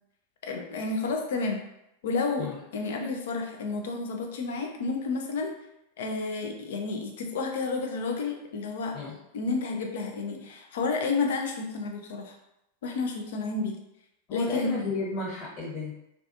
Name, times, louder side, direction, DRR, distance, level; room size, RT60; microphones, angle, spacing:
voice 1, 0.4-1.6 2.0-5.5 6.0-9.0 9.3-12.4 12.8-13.8 14.3-14.7, left 4 dB, 55° left, 3 dB, 0.4 m, -30 dB
voice 2, 14.3-16.0, left 3 dB, 35° left, -6 dB, 1.0 m, -33 dB
2.4 x 2.3 x 2.6 m, 0.85 s
figure-of-eight pair, 90°, 0 cm